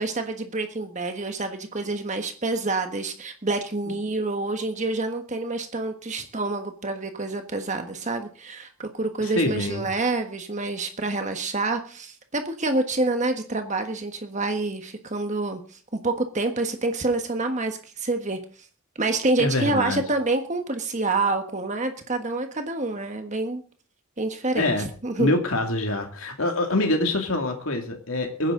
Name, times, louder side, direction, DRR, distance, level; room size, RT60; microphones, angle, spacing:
voice 1, 0.0-18.7 19.0-23.6 24.2-25.3, right 2 dB, 35° right, 6 dB, 1.4 m, -27 dB
voice 2, 9.2-9.8 19.4-20.0 24.6-24.9 25.2-28.5, left 2 dB, 75° left, 3 dB, 2.4 m, -25 dB
23.5 x 10.0 x 3.9 m, 0.40 s
head